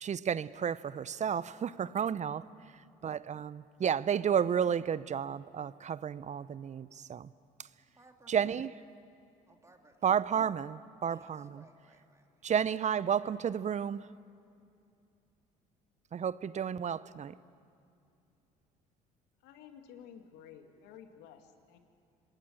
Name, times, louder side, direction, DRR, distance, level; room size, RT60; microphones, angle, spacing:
voice 1, 0.0-7.3 7.6-7.7 8.3-8.7 10.0-11.6 12.4-14.1 16.1-17.3, right 8 dB, 40° right, 18 dB, 0.7 m, -32 dB
voice 2, 7.9-8.6 9.5-10.1 11.1-12.4, right 2 dB, 15° right, 3 dB, 3.5 m, -61 dB
voice 3, 19.4-21.8, left 8 dB, 75° left, 6 dB, 2.3 m, -53 dB
26.0 x 20.5 x 8.8 m, 2.5 s
hypercardioid pair, 65°, 18 cm